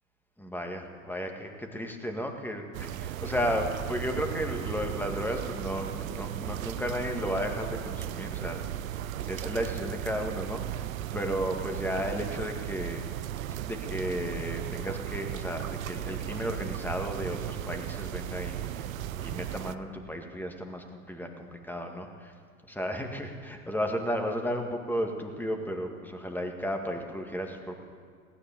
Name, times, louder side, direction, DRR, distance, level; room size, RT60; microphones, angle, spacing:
voice 1, 0.4-8.6 9.2-13.1 13.5-22.3 22.7-27.8, equal, 5° left, 3 dB, 2.0 m, -34 dB
sound 1, 2.7-19.7, right 11 dB, 70° right, 0.7 m, -36 dB
18.5 x 10.0 x 7.0 m, 2.1 s
figure-of-eight pair, 80°, 44 cm